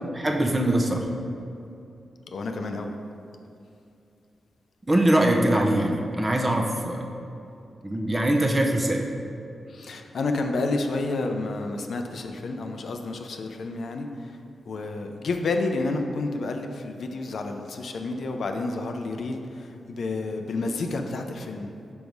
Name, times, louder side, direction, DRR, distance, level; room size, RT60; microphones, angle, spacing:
voice 1, 0.1-1.1 4.9-7.0 7.8-9.0, right 1 dB, 20° right, 1 dB, 0.7 m, -22 dB
voice 2, 2.3-2.9 9.7-14.1 14.7-21.7, left 3 dB, 65° left, 4 dB, 0.5 m, -30 dB
5.3 x 5.2 x 4.6 m, 2.6 s
wide cardioid pair, 110°, 0 cm